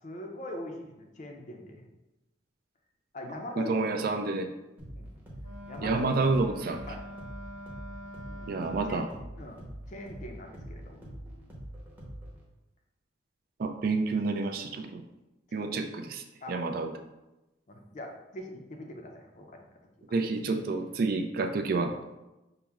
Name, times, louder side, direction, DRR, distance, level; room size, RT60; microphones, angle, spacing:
voice 1, 0.0-1.8 3.1-4.3 4.9-5.2 5.7-6.1 6.8-7.0 8.3-8.5 8.9-9.1 9.4-9.6 9.9-11.0 15.6-15.7 16.4-16.6 17.7-19.7, left 1 dB, 40° left, 3 dB, 0.5 m, -42 dB
voice 2, 3.6-4.5 5.8-6.8 8.5-9.1 13.6-15.0 15.5-16.2 16.5-16.9 20.1-21.9, right 3 dB, 50° right, 6 dB, 0.3 m, -29 dB
sound 1, 4.8-12.4, equal, 10° right, 0.8 m, -44 dB
Wind instrument woodwind instrument, 5.4-9.3, equal, 80° right, 1.1 m, -45 dB
5.7 x 2.0 x 3.5 m, 1.0 s
head